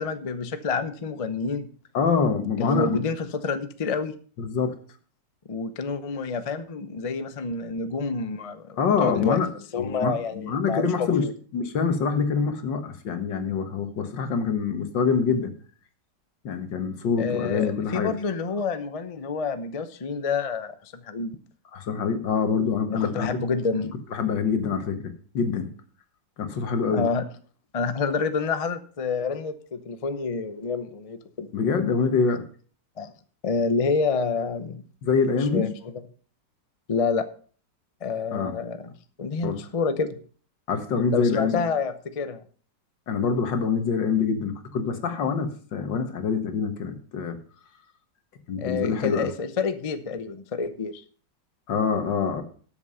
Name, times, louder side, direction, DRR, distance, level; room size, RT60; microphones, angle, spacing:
voice 1, 0.0-1.7 2.6-4.1 5.5-9.4 9.7-11.3 17.2-20.7 21.0-21.4 22.9-23.9 26.9-27.2 27.7-31.5 33.0-33.1 33.4-34.8 35.5-35.7 36.9-37.3 38.0-38.9 39.2-40.2 41.1-42.4 48.6-51.0, left 4 dB, 45° left, 11 dB, 0.4 m, -28 dB
voice 2, 1.9-3.0 4.4-4.7 8.8-9.5 9.8-11.3 11.5-15.5 16.4-18.1 21.7-23.3 24.1-25.0 25.3-25.7 26.4-27.1 31.5-32.5 35.0-35.7 38.3-38.6 39.4-39.6 40.7-41.6 43.1-47.4 48.5-49.3 51.7-52.4, left 5 dB, 80° left, 8 dB, 2.1 m, -25 dB
12.5 x 7.1 x 5.5 m, 0.43 s
omnidirectional pair, 1.9 m